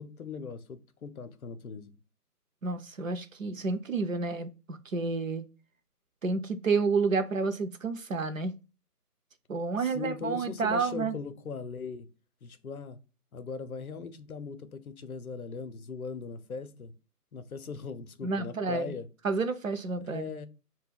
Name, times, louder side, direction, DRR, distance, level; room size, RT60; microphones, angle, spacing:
voice 1, 0.0-1.9 9.8-12.1 12.4-13.0 13.3-16.9 17.3-19.1 20.0-20.5, left 5 dB, 65° left, 0.6 m, -39 dB
voice 2, 2.6-5.4 6.2-8.5 9.5-11.1 18.2-18.9 19.2-20.3, right 4 dB, 60° right, 0.5 m, -30 dB
2.2 x 2.1 x 3.4 m
figure-of-eight pair, 170°, 47 cm